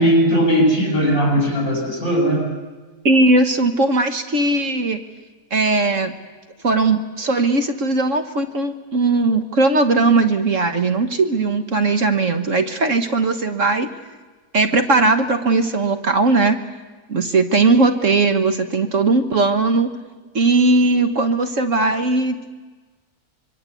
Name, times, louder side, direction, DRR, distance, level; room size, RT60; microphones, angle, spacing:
voice 1, 0.0-2.5, equal, 55° left, 1 dB, 7.6 m, -18 dB
voice 2, 3.0-5.0 5.5-6.1 6.6-13.9 14.5-16.6 17.1-19.9 20.3-22.5, right 3 dB, 55° right, 7 dB, 1.6 m, -18 dB
25.5 x 23.5 x 8.3 m, 1.3 s
omnidirectional pair, 1.7 m